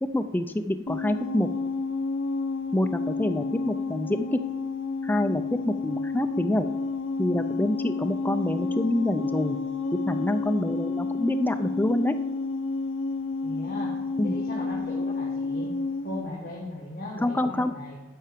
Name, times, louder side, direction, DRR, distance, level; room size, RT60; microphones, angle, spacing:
voice 1, 0.0-1.5 2.7-4.4 5.0-6.7 7.2-9.6 9.9-12.2 14.2-14.3 17.2-17.7, left 1 dB, 10° left, 9 dB, 0.3 m, -26 dB
sound 1, 0.9-16.2, left 3 dB, 65° left, 0.8 m, -30 dB
voice 2, 13.4-13.9 14.2-15.7 16.0-18.0, left 1 dB, 40° left, -6 dB, 1.8 m, -37 dB
12.0 x 5.5 x 5.0 m, 1.2 s
head